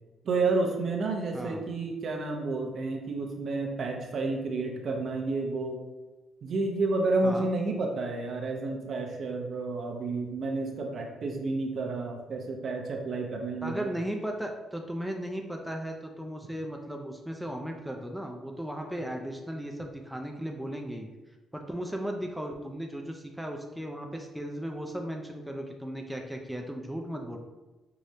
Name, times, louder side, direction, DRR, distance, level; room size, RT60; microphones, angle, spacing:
voice 1, 0.2-5.8 6.4-13.9, right 3 dB, 55° right, 2 dB, 0.6 m, -30 dB
voice 2, 13.6-21.1 21.5-27.4, equal, 5° right, 2 dB, 0.4 m, -36 dB
4.8 x 2.0 x 2.7 m, 1.1 s
cardioid pair, 90°, 0 cm